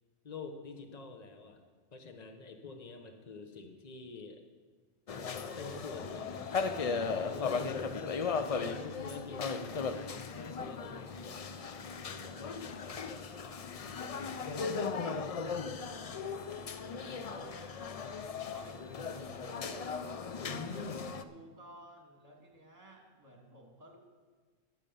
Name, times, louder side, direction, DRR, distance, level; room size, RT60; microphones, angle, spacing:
voice 1, 0.2-1.6 1.9-4.4 5.2-7.9 8.5-13.0 20.4-21.0, left 4 dB, 35° left, 5 dB, 1.1 m, -47 dB
sound 1, 5.1-21.2, left 5 dB, 65° left, 0.3 m, -37 dB
voice 2, 13.9-16.2 16.8-17.9 18.5-19.5 20.4-24.0, right 1 dB, 30° right, 0 dB, 2.2 m, -55 dB
10.0 x 9.1 x 7.0 m, 1.4 s
omnidirectional pair, 1.3 m